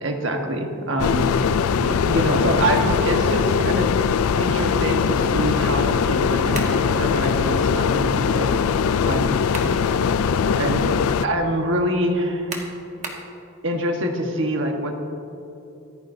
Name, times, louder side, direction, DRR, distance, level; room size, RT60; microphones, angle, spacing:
voice 1, 0.0-4.0 4.4-8.6 9.0-9.4 10.6-12.5 13.6-14.9, right 1 dB, 60° right, 3 dB, 1.4 m, -25 dB
sound 1, 1.0-11.3, left 6 dB, 80° left, 0.4 m, -21 dB
sound 2, 6.5-6.8 9.2-9.8 10.3-10.4 12.5-13.3, right 3 dB, 35° right, 1.3 m, -34 dB
25.0 x 9.5 x 2.7 m, 2.8 s
head